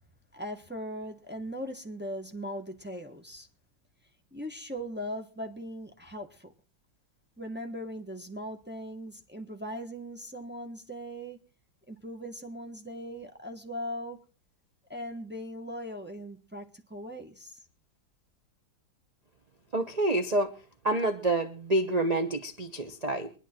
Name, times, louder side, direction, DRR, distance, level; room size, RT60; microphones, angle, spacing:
voice 1, 0.3-3.5 4.3-6.5 7.4-11.4 11.9-14.2 14.9-17.6, equal, 10° right, 0.8 m, -39 dB
voice 2, 19.7-20.5 20.8-23.3, right 2 dB, 40° right, 0.5 m, -28 dB
23.5 x 10.0 x 4.4 m
omnidirectional pair, 2.3 m